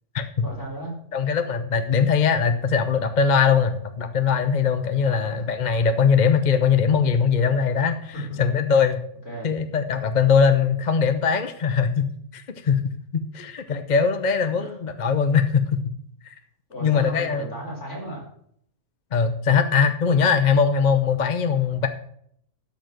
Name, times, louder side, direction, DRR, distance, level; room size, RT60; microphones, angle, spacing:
voice 1, 0.4-0.9 5.0-5.4 8.1-8.4 9.2-9.5 14.6-14.7 16.7-18.3, equal, 70° left, -3 dB, 4.8 m, -34 dB
voice 2, 1.1-9.0 9.4-12.9 13.3-15.9 16.2-16.3 16.8-17.5 19.1-21.9, left 6 dB, 40° left, 8 dB, 0.8 m, -21 dB
13.0 x 4.8 x 7.6 m, 0.66 s
omnidirectional pair, 1.3 m